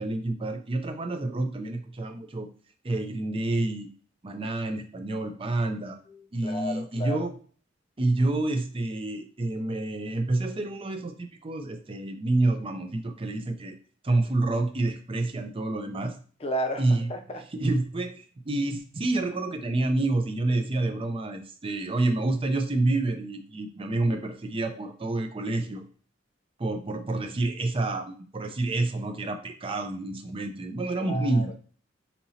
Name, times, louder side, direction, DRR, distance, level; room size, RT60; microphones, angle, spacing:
voice 1, 0.0-2.5 2.8-3.9 4.2-6.0 6.3-7.4 8.0-13.8 14.0-16.2 16.8-17.1 17.5-25.8 26.6-31.5, right 2 dB, 30° right, 6 dB, 0.5 m, -28 dB
voice 2, 6.1-7.3 16.4-17.4 31.0-31.5, equal, 30° left, 4 dB, 0.6 m, -33 dB
5.1 x 2.9 x 2.8 m, 0.42 s
head